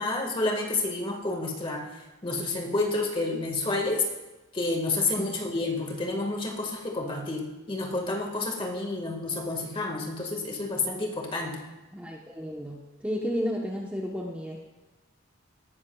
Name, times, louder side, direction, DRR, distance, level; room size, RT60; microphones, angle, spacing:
voice 1, 0.0-1.9 2.2-4.1 4.5-11.6, left 2 dB, 25° left, 1 dB, 1.8 m, -29 dB
voice 2, 11.9-14.6, equal, 5° right, -2 dB, 0.9 m, -32 dB
18.5 x 12.5 x 2.4 m, 1.1 s
head